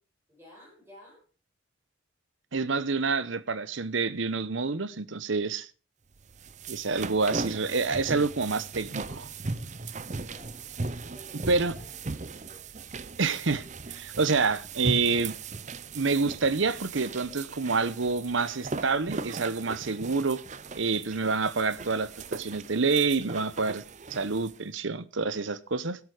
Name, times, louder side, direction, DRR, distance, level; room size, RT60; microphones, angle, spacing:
voice 1, 0.3-1.2 10.2-10.6 11.0-12.6, equal, 10° right, 7.0 m, -53 dB
voice 2, 2.5-5.7 6.7-9.3 11.5-11.7 13.2-15.3 15.9-20.4 20.7-23.8 24.1-26.0, right 4 dB, 70° right, 0.9 m, -28 dB
sound 1, 6.2-24.6, right 3 dB, 35° right, 0.6 m, -38 dB
17.0 x 8.2 x 4.9 m
head